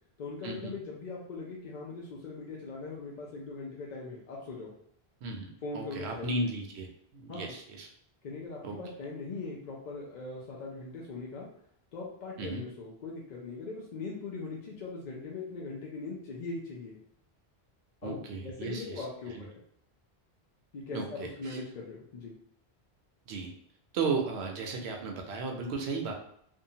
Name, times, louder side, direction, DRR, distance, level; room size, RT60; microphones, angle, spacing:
voice 1, 0.2-4.7 5.6-6.4 7.3-7.6 8.2-11.5 11.9-17.0 18.0-18.2 18.4-19.6 20.7-22.3, left 3 dB, 55° left, -3 dB, 0.5 m, -40 dB
voice 2, 5.2-7.9 8.6-8.8 12.4-12.6 18.0-19.0 19.3-19.5 20.9-21.6 23.3-23.5 23.9-26.1, right 3 dB, 80° right, 2 dB, 0.8 m, -35 dB
2.6 x 2.2 x 2.7 m, 0.68 s
omnidirectional pair, 1.1 m